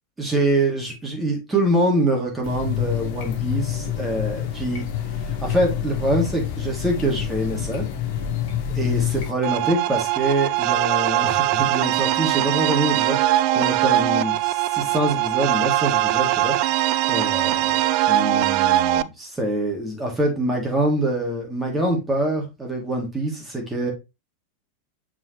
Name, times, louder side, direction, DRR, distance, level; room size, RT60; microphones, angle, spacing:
voice 1, 0.2-4.8 5.3-7.8 8.7-13.2 13.5-16.6 17.1-23.9, right 1 dB, 10° right, 2.8 m, -25 dB
sound 1, 2.4-9.3, left 9 dB, 50° left, 1.3 m, -27 dB
sound 2, 9.4-19.0, right 14 dB, 45° right, 0.3 m, -21 dB
7.1 x 5.0 x 3.2 m
figure-of-eight pair, 90°, 0 cm